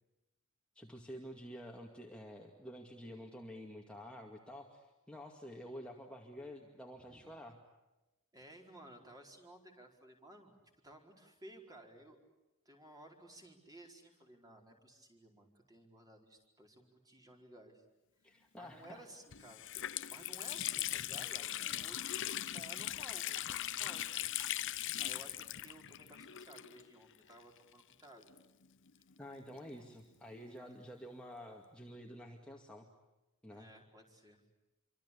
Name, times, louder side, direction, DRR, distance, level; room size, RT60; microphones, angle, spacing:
voice 1, 0.8-7.6 18.2-19.1 29.2-32.9 33.4-33.7, equal, 5° left, 0 dB, 2.3 m, -49 dB
voice 2, 6.9-7.3 8.3-10.6 10.8-12.2 12.6-17.8 18.5-19.7 20.1-22.2 22.5-24.0 25.0-28.3 33.5-34.4, right 1 dB, 15° right, 2 dB, 4.6 m, -56 dB
Water tap faucet, 18.8-18.9 19.3-27.0 27.3-27.4 28.2-29.8, left 13 dB, 55° left, 0.9 m, -40 dB
27.0 x 25.5 x 8.6 m, 1.0 s
head